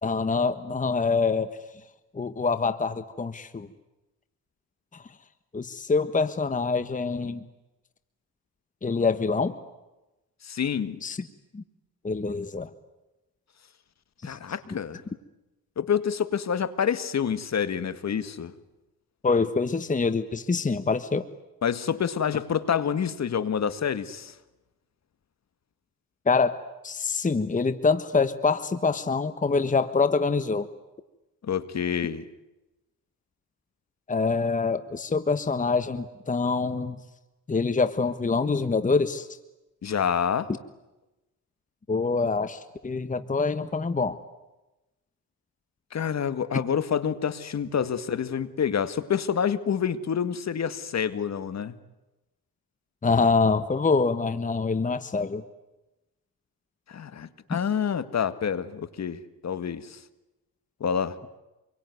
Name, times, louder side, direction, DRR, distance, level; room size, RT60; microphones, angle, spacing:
voice 1, 0.0-1.6 2.1-3.7 4.9-5.0 5.5-7.4 8.8-9.6 11.0-11.3 11.5-11.6 12.0-12.7 14.2-14.4 19.2-21.3 26.2-26.6 26.8-30.7 34.1-37.0 37.5-39.3 41.9-44.2 53.0-55.4 57.5-57.6, left 4 dB, 20° left, 1.4 m, -25 dB
voice 2, 10.4-11.0 14.2-15.0 15.8-18.5 21.6-24.3 31.4-32.2 39.8-40.5 45.9-51.7 56.9-60.0 60.8-61.2, left 7 dB, 45° left, 1.9 m, -27 dB
27.0 x 23.0 x 9.5 m
cardioid pair, 90°, 39 cm